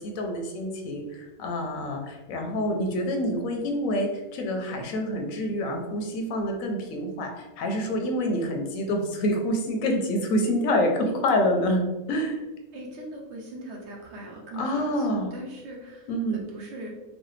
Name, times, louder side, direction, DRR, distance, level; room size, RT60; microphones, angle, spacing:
voice 1, 0.0-11.8 12.1-12.4 14.6-15.3 16.1-16.4, left 1 dB, 85° left, 3 dB, 1.0 m, -27 dB
voice 2, 12.7-16.9, right 1 dB, 65° right, 0 dB, 0.8 m, -40 dB
3.1 x 2.2 x 3.1 m, 1.1 s
omnidirectional pair, 1.4 m